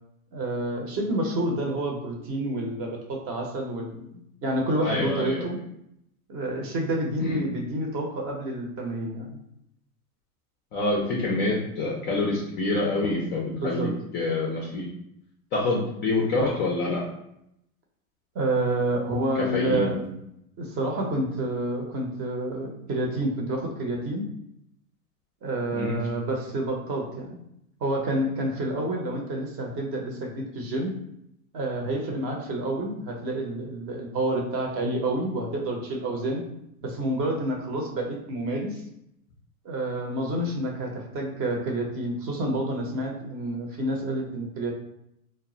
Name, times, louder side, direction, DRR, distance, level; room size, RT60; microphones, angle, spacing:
voice 1, 0.3-4.1 4.4-5.6 6.3-9.3 13.5-13.9 18.3-20.0 20.6-24.2 25.4-27.4 27.8-30.9 31.5-36.4 36.8-38.8 39.6-44.7, right 1 dB, 30° right, 0 dB, 0.6 m, -29 dB
voice 2, 4.8-5.4 7.2-7.4 10.7-14.9 15.5-17.0 19.4-20.1 25.7-26.0, left 2 dB, 25° left, -3 dB, 0.4 m, -27 dB
2.1 x 2.0 x 3.7 m, 0.77 s
hypercardioid pair, 110°, 44 cm